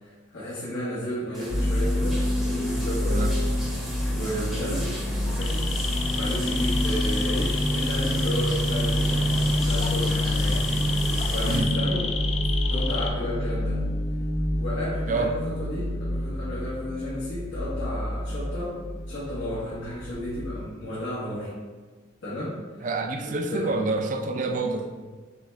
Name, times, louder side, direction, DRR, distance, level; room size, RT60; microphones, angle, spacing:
voice 1, 0.0-3.3 4.1-4.9 5.3-5.7 6.1-12.0 12.7-13.8 14.5-18.7 19.1-21.5 22.2-22.9 23.2-23.7, left 1 dB, 90° left, -11 dB, 1.4 m, -33 dB
sound 1, 1.3-11.6, equal, ahead, 0.7 m, -35 dB
sound 2, 1.5-20.8, equal, 50° left, 0.7 m, -27 dB
sound 3, 5.3-13.1, left 5 dB, 35° left, 0.3 m, -32 dB
voice 2, 11.4-11.7 15.1-15.4 22.8-24.9, right 3 dB, 40° right, 5 dB, 0.4 m, -27 dB
5.9 x 2.4 x 3.2 m, 1.4 s
head